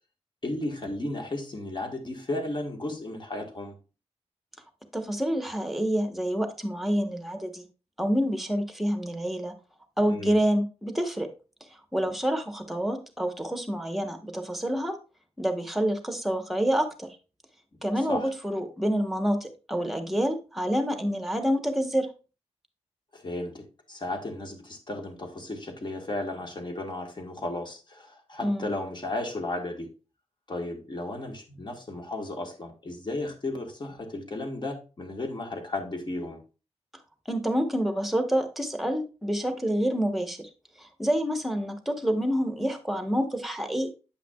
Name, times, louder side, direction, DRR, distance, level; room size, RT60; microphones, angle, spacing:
voice 1, 0.4-3.7 10.1-10.4 18.1-18.3 23.1-29.9 30.5-36.4, left 2 dB, 40° left, 4 dB, 1.5 m, -34 dB
voice 2, 4.9-7.6 8.0-9.5 10.0-11.3 11.9-15.0 15.4-17.1 17.8-22.1 28.4-28.7 37.2-40.5 40.8-43.9, equal, ahead, 7 dB, 1.1 m, -27 dB
8.3 x 5.7 x 2.3 m, 0.33 s
wide cardioid pair, 80°, 11 cm